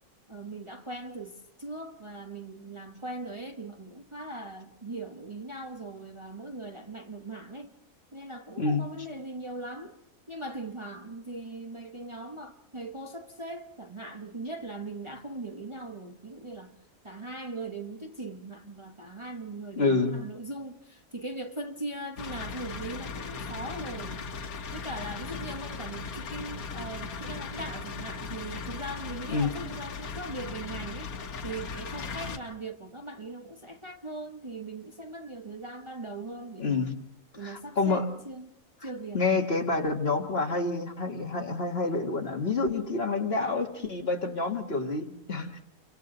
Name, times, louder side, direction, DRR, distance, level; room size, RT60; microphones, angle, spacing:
voice 1, 0.3-7.7 8.1-10.0 10.3-16.7 17.0-24.2 24.7-31.2 31.4-36.9 37.3-38.5 38.8-39.2, right 2 dB, 20° right, 1.2 m, -40 dB
voice 2, 19.8-20.2 29.3-29.5 36.6-36.9 37.4-38.1 39.1-45.6, left 3 dB, 45° left, 2.1 m, -28 dB
sound 1, 22.2-32.4, left 4 dB, 85° left, 1.6 m, -38 dB
28.5 x 24.5 x 3.9 m
omnidirectional pair, 1.5 m